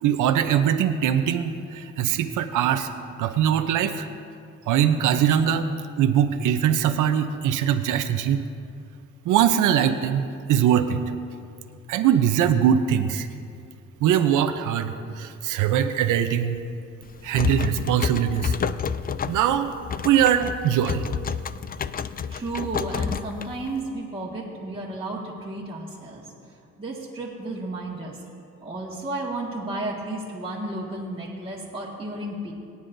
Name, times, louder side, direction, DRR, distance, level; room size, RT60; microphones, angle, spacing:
voice 1, 0.0-2.9 3.2-4.1 4.7-5.7 6.0-8.5 9.2-11.0 11.9-13.3 14.0-16.6 17.2-18.6 19.3-19.7 20.0-21.0, right 9 dB, 85° right, 8 dB, 0.8 m, -22 dB
sound 1, 17.0-23.9, left 7 dB, 30° left, 0.4 m, -30 dB
voice 2, 22.3-26.3 26.8-28.2 28.6-32.5, right 2 dB, 20° right, -6 dB, 1.8 m, -33 dB
22.0 x 9.6 x 2.7 m, 2.4 s
cardioid pair, 90°, 30 cm